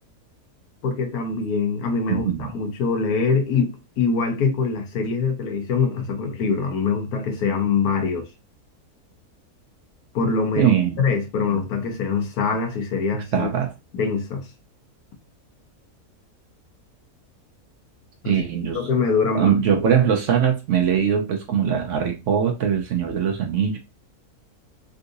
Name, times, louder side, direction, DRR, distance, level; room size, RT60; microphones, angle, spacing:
voice 1, 0.8-8.3 10.1-13.5 13.9-14.5 18.2-18.4 18.7-19.6, left 5 dB, 80° left, 1.3 m, -24 dB
voice 2, 2.1-2.5 10.6-11.1 13.3-13.7 18.2-18.8 19.3-23.8, right 8 dB, 65° right, 0.8 m, -21 dB
3.8 x 2.5 x 2.5 m
omnidirectional pair, 1.6 m